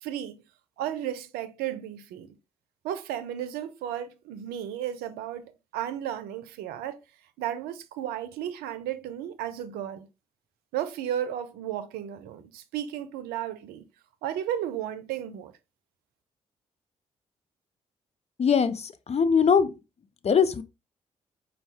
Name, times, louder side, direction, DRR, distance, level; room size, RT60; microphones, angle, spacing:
voice 1, 0.0-0.4 0.8-2.3 2.8-7.0 7.4-10.1 10.7-13.8 14.2-15.5, right 11 dB, 75° right, 0.5 m, -34 dB
voice 2, 18.4-19.7 20.2-20.6, left 6 dB, 40° left, 0.6 m, -22 dB
5.3 x 2.3 x 3.4 m
hypercardioid pair, 40°, 16 cm